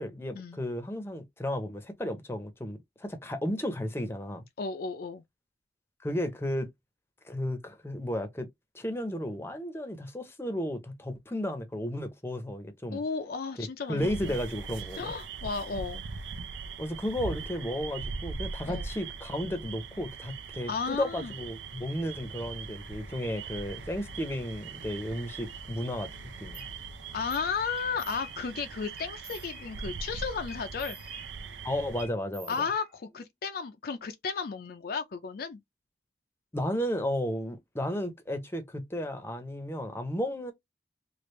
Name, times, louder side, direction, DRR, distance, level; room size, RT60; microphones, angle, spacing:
voice 1, 0.0-4.4 6.0-6.7 7.2-8.5 8.7-13.0 13.6-15.1 16.8-26.1 26.4-26.6 31.6-32.5 36.5-40.5, left 1 dB, 15° left, 0.6 m, -33 dB
voice 2, 4.6-5.2 12.9-14.4 15.0-16.0 18.6-18.9 20.7-21.3 27.1-31.0 32.5-35.6, left 5 dB, 55° left, 0.4 m, -34 dB
sound 1, 14.0-32.1, right 5 dB, 85° right, 0.5 m, -41 dB
sound 2, 22.2-27.5, left 2 dB, 50° right, 0.8 m, -51 dB
sound 3, 26.5-26.7 27.3-27.5 27.8-28.6 29.0-30.0 30.5-31.6 32.0-33.2, equal, 30° right, 1.3 m, -49 dB
3.2 x 2.5 x 3.0 m
head